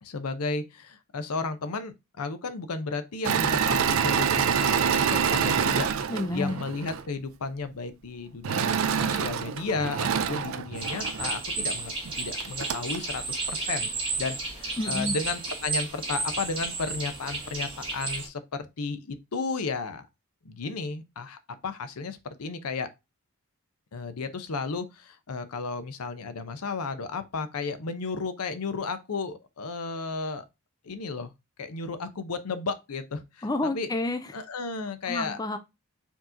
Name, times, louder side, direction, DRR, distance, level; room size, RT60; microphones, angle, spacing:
voice 1, 0.0-5.9 6.3-13.9 14.2-20.1 20.4-22.9 23.9-30.4 30.8-31.3 31.6-33.9 34.3-35.4, left 4 dB, 85° left, 0.7 m, -33 dB
Engine / Mechanisms, 3.2-7.0 8.4-11.4 12.0-12.1 12.4-13.0, right 7 dB, 65° right, 0.4 m, -26 dB
voice 2, 6.1-6.6 14.8-15.1 33.4-34.3 35.1-35.6, left 2 dB, 15° left, 0.4 m, -29 dB
sound 1, 10.7-18.3, right 3 dB, 25° right, 1.5 m, -32 dB
4.5 x 2.9 x 3.7 m
head